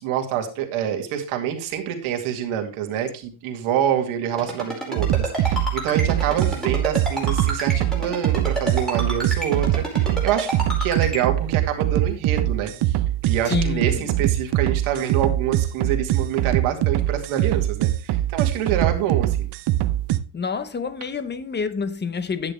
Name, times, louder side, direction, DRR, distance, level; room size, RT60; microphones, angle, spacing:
voice 1, 0.0-13.0 13.3-19.5, right 9 dB, 80° right, 2.4 m, -26 dB
Ringtone, 4.4-11.2, equal, ahead, 4.7 m, -28 dB
sound 1, 5.0-20.2, right 14 dB, 55° right, 0.8 m, -22 dB
voice 2, 13.5-14.3 20.3-22.5, left 5 dB, 20° left, 0.9 m, -28 dB
10.5 x 8.8 x 3.3 m
cardioid pair, 130°, 49 cm